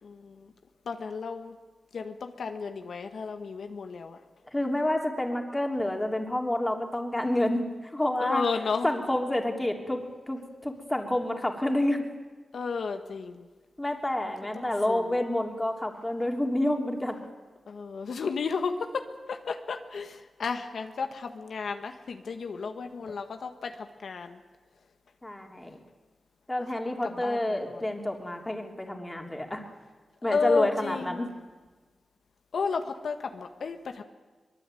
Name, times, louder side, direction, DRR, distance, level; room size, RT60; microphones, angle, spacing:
voice 1, 0.0-0.5 0.8-1.5 1.9-4.2 8.2-8.9 12.5-13.4 14.5-15.2 17.7-24.4 27.0-27.8 30.2-31.3 32.5-34.0, left 5 dB, 80° left, 6 dB, 1.5 m, -33 dB
voice 2, 4.5-7.6 7.9-8.4 8.8-10.0 10.3-12.0 13.8-17.2 25.2-25.8 26.5-29.6 30.2-31.3, left 1 dB, 15° left, 3 dB, 3.3 m, -28 dB
23.5 x 22.0 x 9.2 m, 1.4 s
wide cardioid pair, 95°, 0 cm